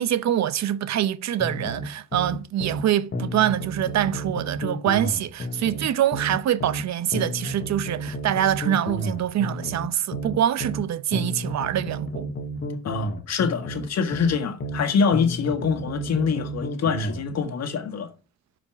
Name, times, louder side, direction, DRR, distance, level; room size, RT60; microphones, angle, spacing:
voice 1, 0.0-12.3, right 11 dB, 65° right, 0.7 m, -25 dB
sound 1, 1.4-2.9 3.1-6.8 7.1-10.8 11.1-14.8 15.1-17.2, equal, 40° left, 1.7 m, -31 dB
voice 2, 12.8-18.1, left 6 dB, 60° left, 1.7 m, -25 dB
12.0 x 5.1 x 5.9 m
cardioid pair, 90°, 30 cm